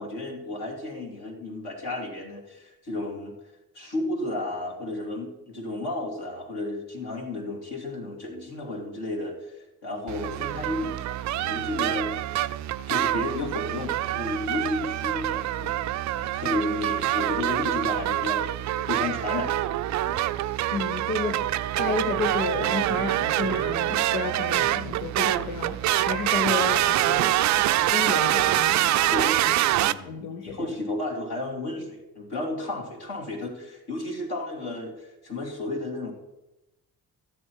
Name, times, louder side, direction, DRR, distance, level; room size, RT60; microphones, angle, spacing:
voice 1, 0.0-3.3 3.7-12.1 12.9-15.8 16.1-20.2 29.1-29.4 29.7-36.1, left 2 dB, 50° left, 0 dB, 2.7 m, -33 dB
sound 1, 10.1-29.9, right 14 dB, 40° right, 0.4 m, -25 dB
voice 2, 20.7-29.6 30.0-30.7, left 4 dB, 80° left, 4 dB, 0.9 m, -32 dB
13.5 x 7.9 x 4.7 m, 0.97 s
figure-of-eight pair, 40°, 49 cm